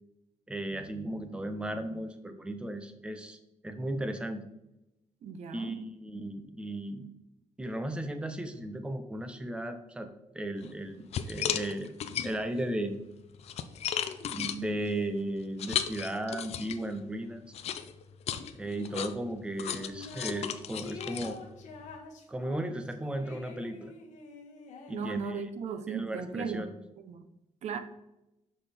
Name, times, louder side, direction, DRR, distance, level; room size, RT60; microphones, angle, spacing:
voice 1, 0.5-3.4 3.6-4.4 5.5-7.1 7.6-11.9 12.2-12.9 14.3-17.4 18.5-21.4 22.3-23.9 24.9-25.4 25.9-26.8, right 1 dB, 10° right, 8 dB, 0.5 m, -35 dB
voice 2, 5.2-5.8 24.9-26.7 27.0-27.3 27.6-27.8, right 6 dB, 60° right, 9 dB, 0.7 m, -36 dB
sound 1, 10.6-10.7 11.1-12.6 13.1-17.0 17.5-22.0, left 9 dB, 60° left, 0.5 m, -35 dB
sound 2, 19.7-20.5 20.8-25.5, left 4 dB, 75° left, 1.2 m, -47 dB
6.1 x 5.6 x 3.4 m, 0.91 s
cardioid pair, 170°, 13 cm